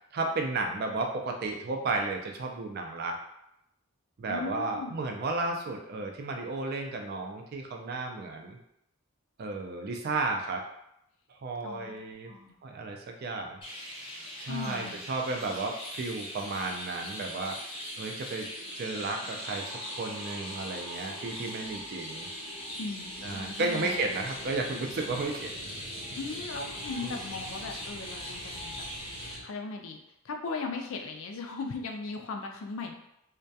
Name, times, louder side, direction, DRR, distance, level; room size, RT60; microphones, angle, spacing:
voice 1, 0.1-3.2 4.2-8.6 9.4-10.6 11.4-12.3 12.6-13.6 14.4-17.6 18.0-18.5 18.7-22.3 23.2-25.5 27.0-27.1, right 3 dB, 45° right, 2 dB, 0.3 m, -33 dB
voice 2, 4.3-5.1 11.6-11.9 12.3-12.6 14.5-15.0 22.7-24.0 26.1-30.0 30.2-32.9, left 4 dB, 70° left, 3 dB, 0.4 m, -38 dB
Chirp tweet, 13.6-29.4, equal, 25° left, 0.6 m, -41 dB
sound 1, 17.5-29.4, right 1 dB, 90° right, 0.6 m, -48 dB
2.2 x 2.2 x 2.6 m, 0.79 s
head